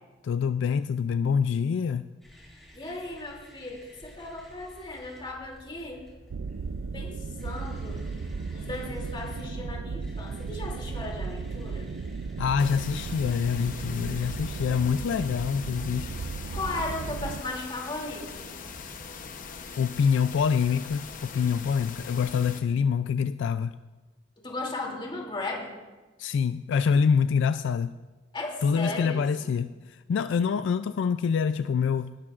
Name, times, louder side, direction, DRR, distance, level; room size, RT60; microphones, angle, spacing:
voice 1, 0.2-2.1 12.4-16.1 19.8-23.8 26.2-27.9 28.6-32.2, left 6 dB, 65° left, 12 dB, 0.3 m, -26 dB
sound 1, 2.2-14.9, equal, ahead, 5.1 m, -51 dB
voice 2, 2.7-6.0 6.9-7.2 7.4-8.0 8.5-11.9 16.5-18.3 24.4-25.7 28.3-29.5, left 2 dB, 25° left, -1 dB, 2.7 m, -36 dB
sound 2, 6.3-17.4, right 4 dB, 85° right, 0.4 m, -35 dB
sound 3, 12.6-22.6, left 5 dB, 45° left, 0.8 m, -42 dB
19.5 x 13.5 x 2.4 m, 1.3 s
head